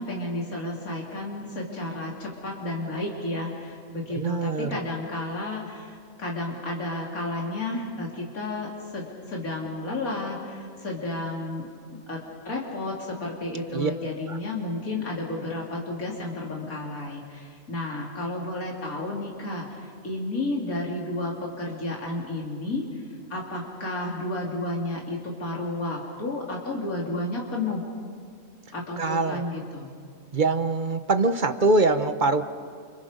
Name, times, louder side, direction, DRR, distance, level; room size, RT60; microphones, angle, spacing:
voice 1, 0.0-11.6 12.1-12.2 12.5-27.9 28.7-29.9, left 2 dB, 80° left, -2 dB, 3.7 m, -32 dB
voice 2, 4.1-4.7 13.7-13.9 14.3-14.4 29.0-29.5 30.3-32.4, right 3 dB, 40° right, 9 dB, 1.1 m, -23 dB
29.5 x 29.5 x 5.2 m, 2.2 s
omnidirectional pair, 1.5 m